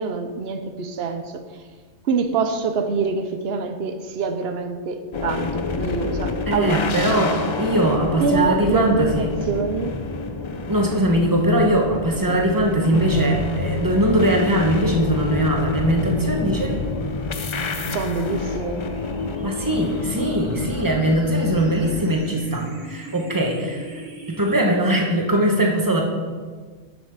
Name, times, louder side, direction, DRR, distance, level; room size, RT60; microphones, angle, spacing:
voice 1, 0.0-1.4 2.0-7.3 8.2-9.9 17.9-18.8, right 5 dB, 70° right, 7 dB, 0.9 m, -25 dB
sound 1, 5.1-22.1, left 4 dB, 55° left, 0.3 m, -28 dB
voice 2, 6.5-9.3 10.7-16.8 19.4-26.0, right 1 dB, 20° right, 1 dB, 1.1 m, -21 dB
sound 2, 14.6-24.6, right 1 dB, 45° right, 1.5 m, -36 dB
7.1 x 5.2 x 6.4 m, 1.5 s
omnidirectional pair, 1.1 m